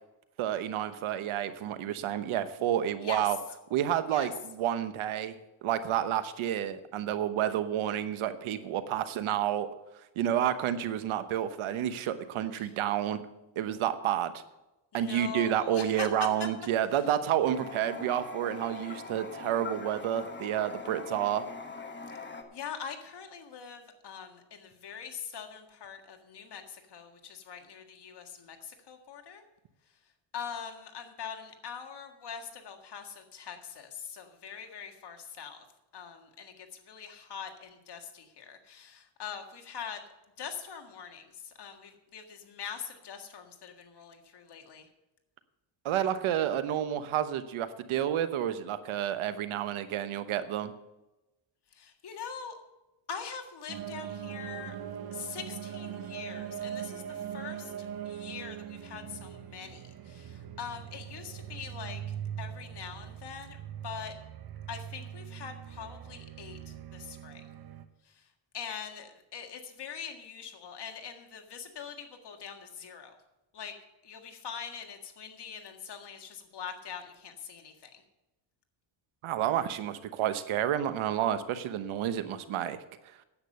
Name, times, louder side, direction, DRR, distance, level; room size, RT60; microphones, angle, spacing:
voice 1, 0.4-3.4 3.7-9.7 10.2-13.2 13.6-14.4 14.9-21.5 45.8-50.7 79.2-83.2, right 10 dB, 75° right, 11 dB, 1.1 m, -30 dB
voice 2, 3.0-3.3 4.1-4.3 12.6-12.7 14.9-16.3 22.5-29.4 30.3-35.7 35.9-40.0 40.4-44.9 51.7-52.6 53.1-54.8 55.1-57.7 58.0-63.6 63.8-64.1 64.7-67.4 68.1-68.2 68.5-73.2 73.5-73.7 74.0-78.0, left 7 dB, 55° left, 4 dB, 1.8 m, -43 dB
Toilet flush, 17.4-22.4, left 4 dB, 20° left, 1.4 m, -42 dB
sound 1, 53.7-67.8, right 9 dB, 50° right, 1.1 m, -41 dB
10.0 x 8.3 x 6.7 m, 0.97 s
cardioid pair, 100°, 48 cm